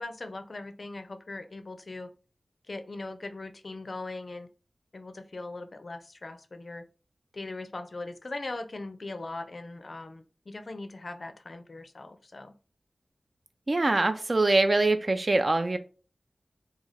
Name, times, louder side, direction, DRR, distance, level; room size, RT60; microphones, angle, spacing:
voice 1, 0.0-2.1 2.7-4.5 4.9-6.8 7.3-12.5, left 2 dB, 60° left, 8 dB, 0.4 m, -40 dB
voice 2, 13.7-15.8, right 2 dB, 50° right, 9 dB, 0.4 m, -23 dB
2.4 x 2.3 x 3.2 m, 0.36 s
cardioid pair, 40°, 0 cm